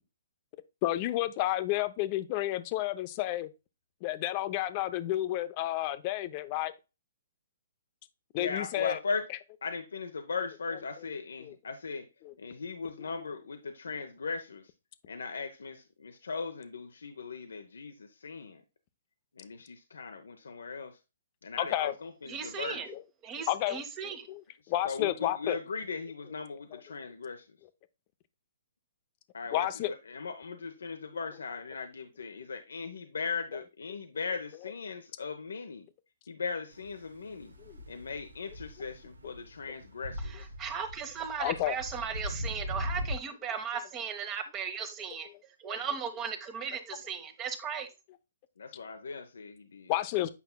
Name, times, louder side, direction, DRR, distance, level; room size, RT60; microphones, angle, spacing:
voice 1, 0.8-3.5 4.0-6.7 8.3-9.0 11.4-11.6 12.2-12.3 21.6-21.9 22.9-23.0 23.5-25.6 26.7-26.8 29.5-29.9 34.6-34.7 37.6-37.8 39.2-39.3 41.4-41.7 45.6-45.8 49.9-50.3, left 15 dB, 35° left, 0.7 m, -31 dB
voice 2, 8.3-9.2 9.6-12.0 12.4-14.6 15.1-18.6 19.4-20.9 21.4-22.8 24.8-27.4 29.3-35.9 36.3-37.5 37.9-40.5 48.6-49.9, left 4 dB, 80° left, 0.8 m, -38 dB
voice 3, 22.3-22.9 23.2-24.3 40.2-45.3 45.6-47.9, right 6 dB, 25° right, 1.1 m, -37 dB
sound 1, 36.7-43.2, left 1 dB, 90° right, 0.9 m, -40 dB
8.3 x 5.4 x 2.2 m
hypercardioid pair, 135°, 0 cm